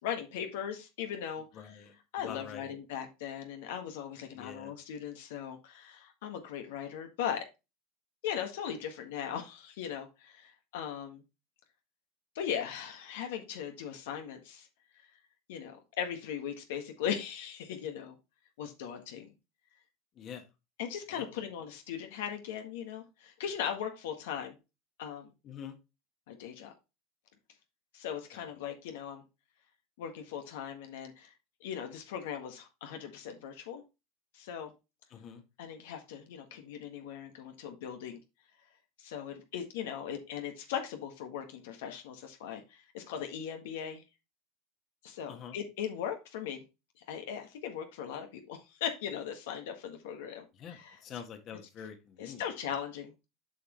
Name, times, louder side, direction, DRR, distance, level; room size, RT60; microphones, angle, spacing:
voice 1, 0.0-1.8 2.1-7.4 8.2-11.2 12.3-14.7 15.5-18.2 18.6-19.3 20.8-24.5 25.0-25.3 26.3-26.7 27.9-29.2 30.0-31.3 31.6-33.8 34.3-34.7 35.6-38.2 39.0-44.0 45.0-46.6 47.1-51.2 52.2-53.3, left 8 dB, 80° left, 5 dB, 1.6 m, -39 dB
voice 2, 1.5-1.9 2.2-2.7 4.3-4.7 20.2-20.4 21.1-21.2 25.4-25.8 35.1-35.4 45.3-45.5 50.6-52.4, left 8 dB, 40° left, 6 dB, 1.6 m, -45 dB
7.9 x 5.3 x 3.1 m, 0.26 s
supercardioid pair, 120°, 0 cm